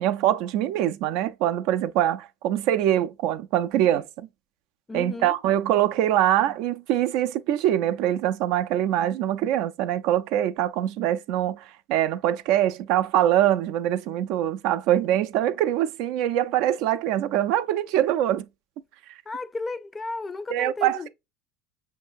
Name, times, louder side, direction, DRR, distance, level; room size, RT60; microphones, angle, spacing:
voice 1, 0.0-4.3 4.9-18.5 20.5-21.1, right 12 dB, 70° right, 0.4 m, -23 dB
voice 2, 4.9-5.4 19.3-21.1, left 3 dB, 20° left, 0.4 m, -34 dB
5.5 x 2.6 x 2.5 m
supercardioid pair, 105°, 0 cm